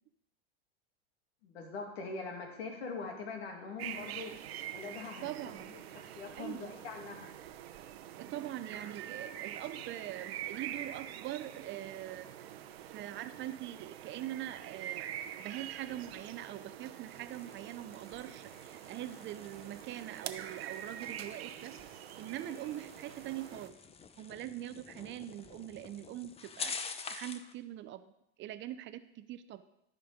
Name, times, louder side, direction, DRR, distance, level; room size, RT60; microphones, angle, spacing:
voice 1, 1.4-4.3 4.7-7.3, left 4 dB, 80° left, 2 dB, 2.6 m, -43 dB
sound 1, 3.8-23.7, right 11 dB, 80° right, 0.8 m, -45 dB
voice 2, 5.2-5.7 6.4-6.7 8.2-12.3 12.8-15.1 15.4-21.8 22.2-23.8 24.2-28.1 28.4-29.6, right 13 dB, 40° right, 12 dB, 0.6 m, -43 dB
sound 2, 16.8-27.5, left 5 dB, 20° left, 0.7 m, -48 dB
13.0 x 5.3 x 5.1 m, 0.82 s
hypercardioid pair, 100°, 31 cm